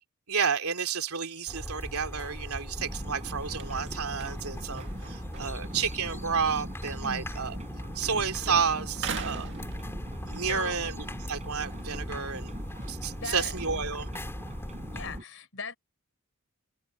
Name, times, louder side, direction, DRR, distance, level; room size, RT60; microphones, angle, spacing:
voice 1, 0.3-7.6 7.9-9.5 10.3-11.0 11.3-12.5 12.9-14.1, right 6 dB, 90° right, 3.1 m, -31 dB
sound 1, 1.5-15.2, equal, 10° left, 5.1 m, -39 dB
sound 2, 2.5-8.1 8.4-10.4 10.9-14.0, right 6 dB, 55° right, 2.0 m, -44 dB
sound 3, 2.8-15.2, equal, 30° right, 6.5 m, -43 dB
voice 2, 10.4-10.8 13.1-13.6 14.9-15.8, left 4 dB, 65° left, 4.5 m, -39 dB
open air
head